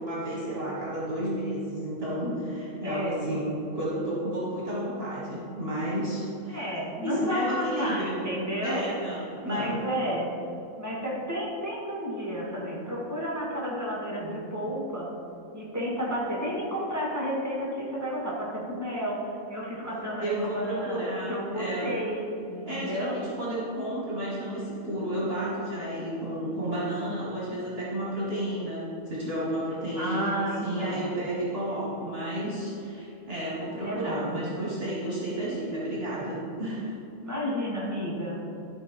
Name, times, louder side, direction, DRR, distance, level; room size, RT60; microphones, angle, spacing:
voice 1, 0.0-6.6 7.0-8.2 8.6-9.8 20.2-21.9 22.7-37.0, right 1 dB, 45° right, -6 dB, 1.7 m, -32 dB
voice 2, 2.8-3.2 6.5-8.8 9.4-10.3 10.8-15.1 15.5-23.2 29.9-31.1 33.8-34.3 37.2-38.5, equal, 10° right, -4 dB, 2.0 m, -31 dB
12.0 x 4.1 x 5.4 m, 2.9 s
omnidirectional pair, 1.4 m